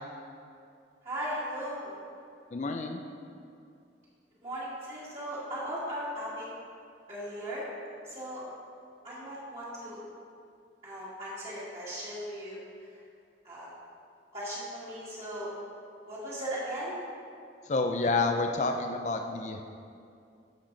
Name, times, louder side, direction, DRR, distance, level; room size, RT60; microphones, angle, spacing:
voice 1, 1.0-2.0 4.4-6.4 7.1-7.7 8.0-8.4 9.0-10.0 10.8-12.6 12.9-13.0 13.4-13.7 14.3-15.5 16.1-17.0, equal, 35° right, -10 dB, 2.0 m, -37 dB
voice 2, 2.5-3.0 17.6-19.6, left 3 dB, 40° left, 4 dB, 0.5 m, -29 dB
11.5 x 6.7 x 4.0 m, 2.4 s
head